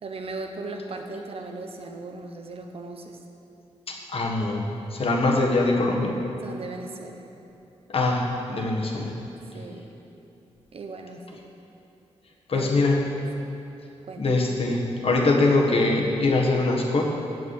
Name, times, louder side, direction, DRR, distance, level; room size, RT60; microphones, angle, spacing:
voice 1, 0.0-3.2 6.4-7.2 9.5-9.9 10.7-11.4 12.5-12.7 14.1-14.3, right 3 dB, 60° right, 4 dB, 1.0 m, -37 dB
voice 2, 3.9-6.2 7.9-9.1 12.5-13.0 14.2-17.0, left 2 dB, 60° left, 0 dB, 1.5 m, -23 dB
7.9 x 7.8 x 8.2 m, 2.9 s
wide cardioid pair, 95°, 11 cm